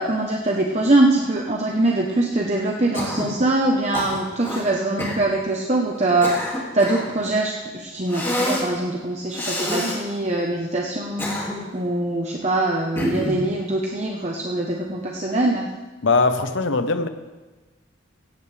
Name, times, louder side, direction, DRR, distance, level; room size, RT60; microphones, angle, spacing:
voice 1, 0.0-11.3 11.7-15.7, right 2 dB, 35° right, 0 dB, 1.0 m, -23 dB
Cough, 2.9-3.4 3.9-4.6 5.0-5.2 5.9-7.1 8.1-8.7 9.3-10.0 10.9-11.8 13.0-13.4, left 1 dB, 10° left, 2.4 m, -27 dB
voice 2, 16.0-17.1, left 3 dB, 75° left, 9 dB, 1.0 m, -20 dB
17.0 x 16.0 x 3.4 m, 1.2 s
head